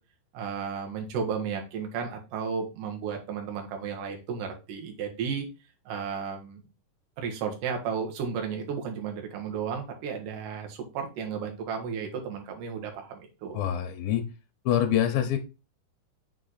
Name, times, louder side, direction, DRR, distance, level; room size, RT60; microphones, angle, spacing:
voice 1, 0.3-5.5 5.9-6.6 7.2-13.6, right 6 dB, 65° right, 3 dB, 2.5 m, -33 dB
voice 2, 13.5-14.2 14.7-15.4, left 10 dB, 75° left, 6 dB, 2.4 m, -25 dB
6.3 x 4.0 x 4.0 m, 0.29 s
omnidirectional pair, 4.7 m